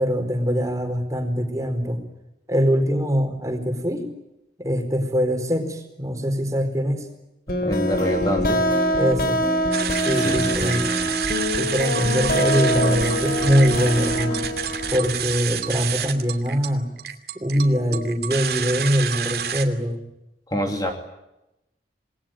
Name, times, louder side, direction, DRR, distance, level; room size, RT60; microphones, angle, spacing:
voice 1, 0.0-2.0 2.5-4.0 4.6-7.1 8.9-9.4 10.0-10.9 11.6-14.4 14.9-16.9 17.3-20.0, equal, 20° right, 5 dB, 4.5 m, -23 dB
sound 1, 7.5-15.0, equal, 55° left, 3.9 m, -24 dB
voice 2, 7.5-8.6 10.2-10.8 17.8-18.0 20.5-20.9, equal, 20° left, 3 dB, 2.6 m, -26 dB
sound 2, 9.7-19.6, right 8 dB, 60° right, 2.7 m, -28 dB
27.5 x 20.5 x 9.1 m, 0.92 s
head